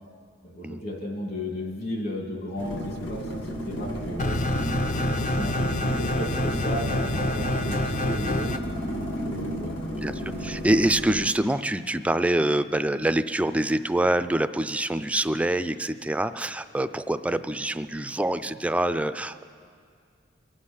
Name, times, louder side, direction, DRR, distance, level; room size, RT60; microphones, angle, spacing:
voice 1, 0.4-4.3 5.1-8.5 8.8-9.8, left 1 dB, 60° left, 1 dB, 2.5 m, -34 dB
sound 1, 2.6-11.3, equal, 85° left, 1.7 m, -33 dB
sound 2, 4.2-8.6, left 1 dB, 40° left, 0.6 m, -27 dB
voice 2, 9.9-19.4, right 1 dB, 5° right, 11 dB, 0.3 m, -25 dB
23.0 x 8.3 x 5.5 m, 2.2 s
head